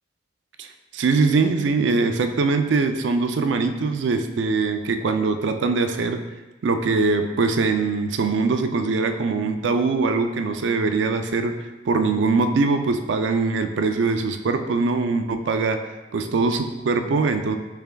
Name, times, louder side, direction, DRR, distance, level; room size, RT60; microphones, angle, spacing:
voice 1, 0.9-6.2 6.6-11.6 11.9-15.8 16.1-17.6, right 4 dB, 75° right, 7 dB, 0.4 m, -22 dB
6.8 x 3.4 x 2.2 m, 1.1 s
head